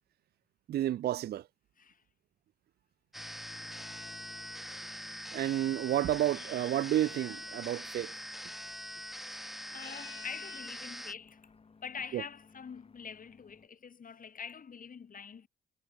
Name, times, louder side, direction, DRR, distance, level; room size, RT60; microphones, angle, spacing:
voice 1, 0.7-1.4 5.3-8.1 12.1-12.2, right 12 dB, 55° right, 0.4 m, -30 dB
sound 1, 3.1-13.7, left 4 dB, 30° left, 1.6 m, -58 dB
sound 2, 3.1-11.1, equal, ahead, 1.2 m, -43 dB
sound 3, 6.2-7.5 9.5-10.7, left 15 dB, 80° left, 0.8 m, -53 dB
voice 2, 9.7-11.4 11.8-15.5, left 6 dB, 45° left, 3.9 m, -45 dB
cardioid pair, 90°, 20 cm